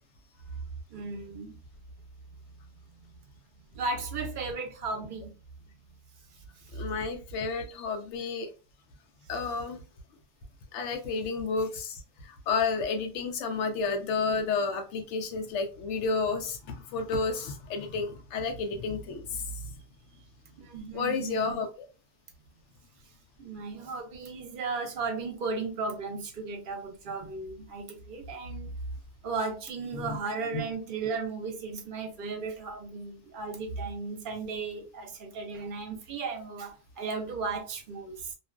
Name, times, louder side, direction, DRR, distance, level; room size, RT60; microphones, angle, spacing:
voice 1, 0.9-1.6 3.7-5.3 6.3-6.9 20.6-21.6 23.4-28.7 29.2-38.3, right 4 dB, 55° right, 0.7 m, -35 dB
voice 2, 6.7-8.5 9.3-9.8 10.7-19.7 20.9-21.9 29.9-30.2, left 4 dB, 85° left, 0.9 m, -31 dB
2.4 x 2.3 x 2.2 m
omnidirectional pair, 1.2 m